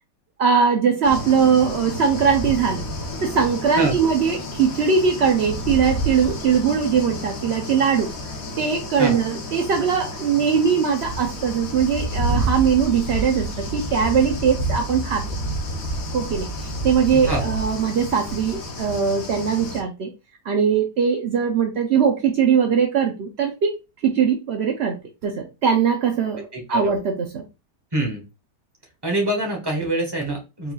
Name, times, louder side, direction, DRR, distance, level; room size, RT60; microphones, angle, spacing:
voice 1, 0.4-2.8 3.2-8.1 8.6-15.3 16.1-20.1 20.4-23.8 24.0-27.4, right 6 dB, 70° right, 0.6 m, -21 dB
sound 1, 1.0-19.8, right 1 dB, 60° left, 1.3 m, -29 dB
voice 2, 17.1-17.4 26.5-26.9 27.9-28.2 29.0-30.7, right 1 dB, 15° right, 1.2 m, -25 dB
4.5 x 4.0 x 2.3 m
omnidirectional pair, 1.8 m